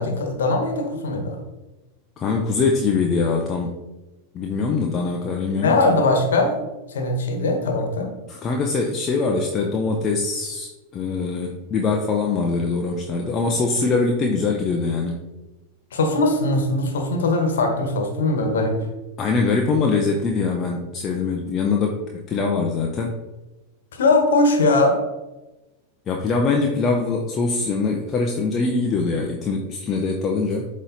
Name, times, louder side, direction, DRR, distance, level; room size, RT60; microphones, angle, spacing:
voice 1, 0.0-1.4 5.6-8.1 15.9-18.9 23.9-25.0, left 2 dB, 70° left, 3 dB, 1.3 m, -20 dB
voice 2, 2.2-3.8 4.3-6.0 8.3-15.2 19.2-23.2 26.1-30.7, left 4 dB, 30° left, 1 dB, 0.7 m, -23 dB
7.9 x 3.2 x 4.0 m, 1.1 s
hypercardioid pair, 95°, 0 cm